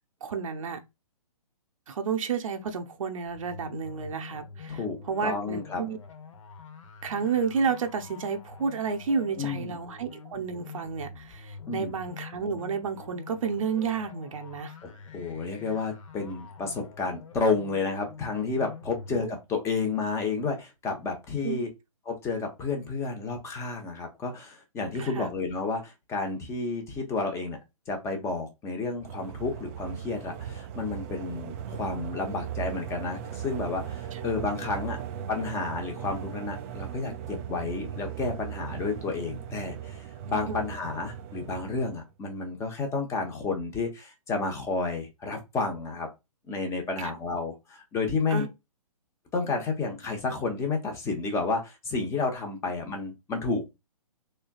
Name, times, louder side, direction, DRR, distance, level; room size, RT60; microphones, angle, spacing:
voice 1, 0.2-0.8 1.9-4.8 5.1-6.0 7.0-14.7 19.1-19.3 21.4-21.6 25.0-25.3 40.5-40.6 47.0-47.1 48.3-48.5, right 5 dB, 60° right, 0.7 m, -31 dB
sound 1, 3.2-19.3, left 5 dB, 55° left, 0.9 m, -46 dB
voice 2, 5.2-5.8 9.4-9.8 11.7-11.9 14.8-21.7 22.1-27.6 27.9-35.0 35.3-46.1 46.5-48.5 49.3-53.7, left 4 dB, 15° left, 0.8 m, -31 dB
sound 2, 29.0-42.1, right 9 dB, 25° right, 0.4 m, -38 dB
3.5 x 3.3 x 2.3 m
figure-of-eight pair, 130°, 19 cm